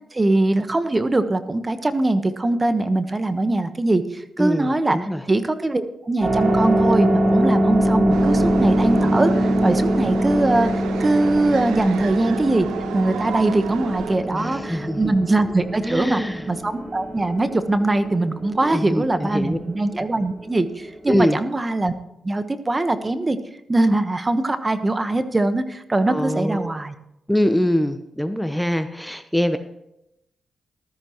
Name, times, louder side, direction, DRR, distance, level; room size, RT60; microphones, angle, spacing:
voice 1, 0.1-12.7 12.9-16.2 16.5-21.9 22.2-23.4 23.7-26.9, right 2 dB, 30° right, 10 dB, 1.2 m, -22 dB
voice 2, 4.4-5.2 14.3-15.1 15.8-16.4 18.6-19.6 21.1-21.4 26.1-26.7 27.3-29.6, equal, 5° left, 10 dB, 1.0 m, -23 dB
sound 1, 6.2-21.2, right 1 dB, 50° right, 5.1 m, -23 dB
sound 2, 8.1-14.2, right 8 dB, 80° right, 0.7 m, -32 dB
15.0 x 13.0 x 3.1 m, 0.83 s
hypercardioid pair, 40°, 0 cm